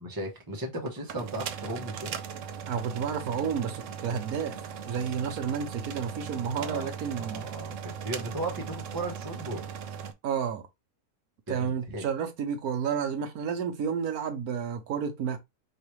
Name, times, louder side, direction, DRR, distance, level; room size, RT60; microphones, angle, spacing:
voice 1, 0.0-2.2 6.5-9.6 11.5-12.1, right 1 dB, 15° right, 1.0 m, -36 dB
sound 1, 0.9-10.1, right 7 dB, 65° right, 0.9 m, -39 dB
voice 2, 2.7-4.6 4.9-7.5 10.2-10.6 11.5-15.4, right 7 dB, 80° right, 1.3 m, -31 dB
4.6 x 3.3 x 3.1 m
omnidirectional pair, 1.6 m